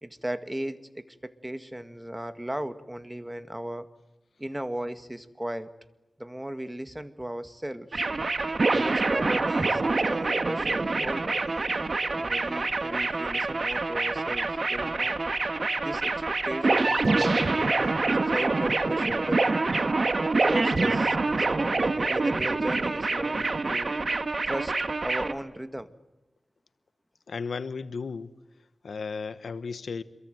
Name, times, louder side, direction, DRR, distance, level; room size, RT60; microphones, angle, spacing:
voice 1, 0.0-3.9 4.4-5.7 6.2-8.1 8.7-11.4 12.1-15.2 15.8-17.8 18.2-19.6 20.5-24.0 24.4-25.9, right 1 dB, 15° right, 10 dB, 1.9 m, -36 dB
sound 1, 7.9-25.3, right 3 dB, 60° right, 1.8 m, -26 dB
voice 2, 27.3-28.3 28.8-30.0, left 5 dB, 90° left, 12 dB, 1.1 m, -34 dB
27.0 x 22.5 x 9.2 m, 1.0 s
cardioid pair, 45°, 0 cm